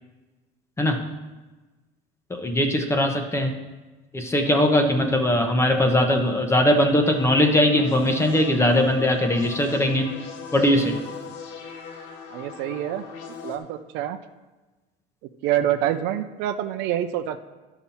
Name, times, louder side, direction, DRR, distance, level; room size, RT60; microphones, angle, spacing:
voice 1, 2.3-3.6 4.1-10.1 10.5-11.0, left 1 dB, 15° left, 5 dB, 1.0 m, -20 dB
sound 1, 7.0-13.6, left 6 dB, 65° left, 1.3 m, -39 dB
voice 2, 12.3-13.1 13.4-14.2 15.4-17.4, right 11 dB, 65° right, 9 dB, 0.6 m, -26 dB
11.5 x 5.9 x 4.2 m, 1.2 s
cardioid pair, 125°, 19 cm